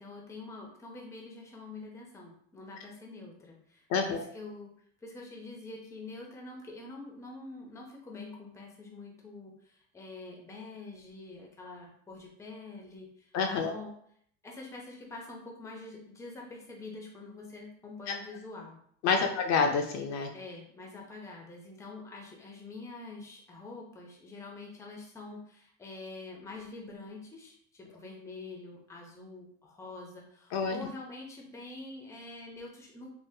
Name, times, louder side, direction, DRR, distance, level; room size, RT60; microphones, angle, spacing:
voice 1, 0.0-4.7 5.0-13.9 14.4-18.8 19.1-19.3 20.3-33.1, left 3 dB, 10° left, 0 dB, 0.5 m, -46 dB
voice 2, 3.9-4.2 13.3-13.7 18.1-18.2 19.0-20.3 30.5-30.9, left 5 dB, 55° left, 4 dB, 0.5 m, -28 dB
3.6 x 2.4 x 2.7 m, 0.66 s
cardioid pair, 135°, 34 cm